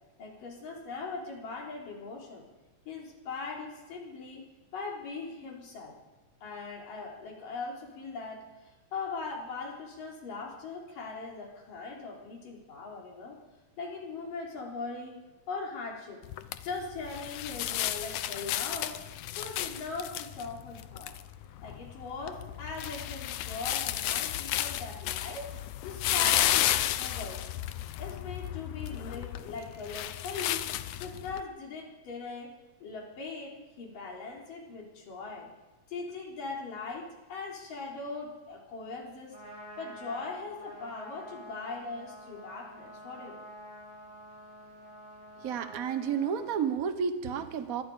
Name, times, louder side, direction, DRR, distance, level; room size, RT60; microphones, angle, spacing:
voice 1, 0.2-2.5 2.9-5.9 6.4-13.4 13.8-15.2 15.5-16.2 16.6-19.0 19.4-21.1 21.6-25.4 25.8-27.4 28.0-30.7 31.0-32.5 32.8-35.5 35.9-39.3 39.8-43.4, left 4 dB, 90° left, -2 dB, 5.7 m, -40 dB
sound 1, 16.2-31.4, left 13 dB, 75° left, 2.1 m, -33 dB
Trumpet, 39.2-46.8, equal, 10° right, 6.0 m, -48 dB
voice 2, 45.4-47.8, right 7 dB, 70° right, 9 dB, 0.8 m, -31 dB
25.5 x 20.0 x 5.1 m, 1.1 s
omnidirectional pair, 3.7 m